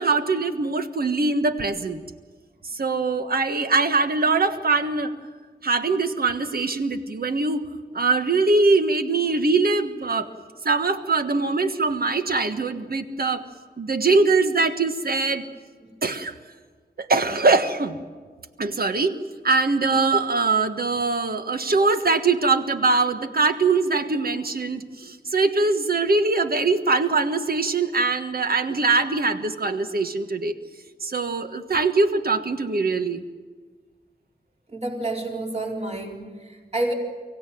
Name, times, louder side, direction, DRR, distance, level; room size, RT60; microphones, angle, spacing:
voice 1, 0.0-2.0 2.7-5.1 5.6-7.6 7.9-10.3 10.6-13.5 13.8-15.4 16.0-16.3 17.0-18.0 18.6-19.2 19.4-30.6 31.0-33.2, right 3 dB, 60° right, 8 dB, 1.5 m, -22 dB
voice 2, 34.7-36.9, right 2 dB, 35° right, -1 dB, 4.3 m, -29 dB
24.5 x 17.0 x 9.3 m, 1.5 s
wide cardioid pair, 95°, 18 cm